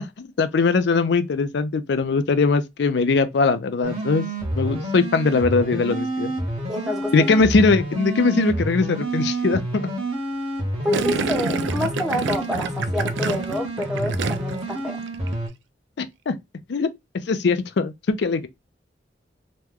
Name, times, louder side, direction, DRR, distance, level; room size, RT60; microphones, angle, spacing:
voice 1, 0.0-4.3 4.5-6.3 7.1-9.9 16.0-16.3 16.7-16.9 17.3-17.9 18.2-18.5, left 4 dB, 65° left, 0.4 m, -21 dB
sound 1, 3.8-15.5, right 1 dB, 35° right, 1.1 m, -28 dB
voice 2, 6.7-7.3 10.8-15.0, left 1 dB, 5° right, 0.6 m, -28 dB
Gurgling, 10.9-14.7 15.0-15.4, right 4 dB, 75° right, 0.3 m, -28 dB
3.0 x 2.2 x 3.5 m
head